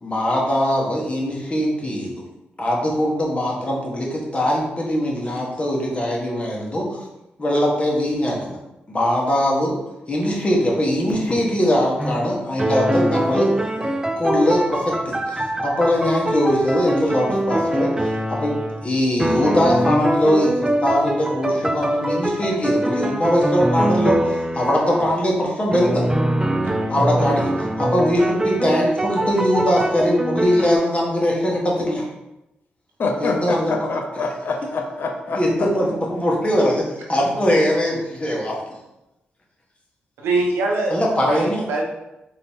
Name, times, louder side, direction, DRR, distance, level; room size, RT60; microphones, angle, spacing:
voice 1, 0.0-2.1 2.6-7.0 7.4-8.6 8.9-9.7 10.1-26.0 26.9-32.0 33.2-33.9 35.3-38.6 40.9-41.6, equal, 30° left, -2 dB, 1.3 m, -21 dB
sound 1, 12.0-12.2 12.6-18.9 19.2-25.2 25.7-30.8, right 1 dB, 15° right, 0.4 m, -23 dB
voice 2, 33.0-35.7, left 3 dB, 60° left, 3 dB, 0.6 m, -25 dB
voice 3, 40.2-41.8, right 2 dB, 90° right, -1 dB, 0.8 m, -23 dB
3.9 x 2.8 x 3.6 m, 0.94 s
supercardioid pair, 55°, 4 cm